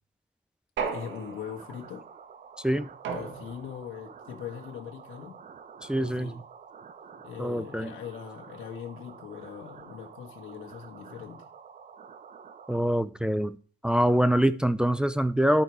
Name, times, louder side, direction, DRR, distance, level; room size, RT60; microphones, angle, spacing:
voice 1, 0.8-2.1 3.1-5.4 5.9-6.4 7.2-11.5, left 8 dB, 85° left, 1 dB, 1.4 m, -41 dB
sound 1, 0.8-1.8 3.0-3.9, right 5 dB, 70° right, 1.4 m, -35 dB
sound 2, 1.0-12.8, right 6 dB, 40° right, 0.8 m, -49 dB
voice 2, 5.8-6.3 7.4-7.9 12.7-13.6 13.8-15.6, right 1 dB, 5° right, 12 dB, 0.4 m, -24 dB
11.5 x 4.7 x 4.7 m, 0.42 s
cardioid pair, 90°, 20 cm